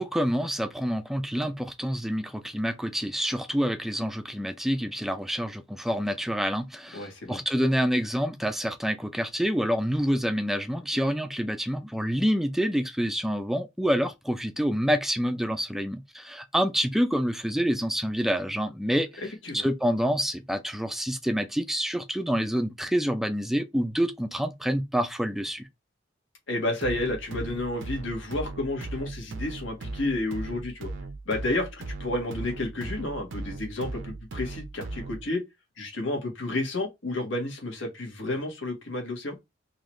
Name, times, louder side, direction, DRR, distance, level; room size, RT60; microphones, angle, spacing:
voice 1, 0.0-19.2 19.5-25.7, equal, ahead, 0.4 m, -27 dB
voice 2, 6.9-7.4 19.4-19.7 26.5-30.9 31.2-31.7 32.0-35.4 35.8-39.4, left 2 dB, 75° left, 1.7 m, -31 dB
sound 1, 26.8-35.3, right 2 dB, 75° right, 0.7 m, -38 dB
3.9 x 2.9 x 3.1 m
head